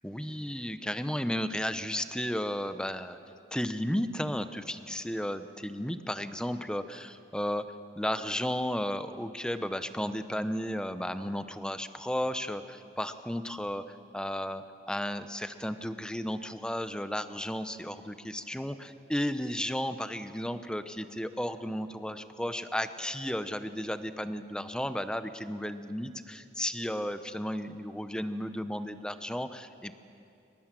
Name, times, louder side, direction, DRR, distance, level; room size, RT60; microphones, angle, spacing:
voice 1, 0.0-3.2 3.5-29.9, equal, 5° left, 10 dB, 0.7 m, -34 dB
25.5 x 20.5 x 7.6 m, 2.6 s
head